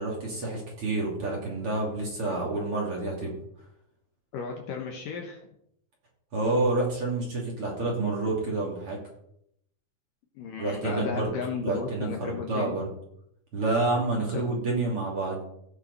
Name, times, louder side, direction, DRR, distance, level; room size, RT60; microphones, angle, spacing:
voice 1, 0.0-3.3 6.3-9.0 10.6-11.3 11.6-12.9 13.5-15.4, right 2 dB, 35° right, -3 dB, 3.0 m, -28 dB
voice 2, 4.3-5.4 10.4-12.8 14.3-14.4, left 5 dB, 70° left, 2 dB, 2.4 m, -34 dB
16.5 x 5.7 x 5.5 m, 0.76 s
omnidirectional pair, 4.8 m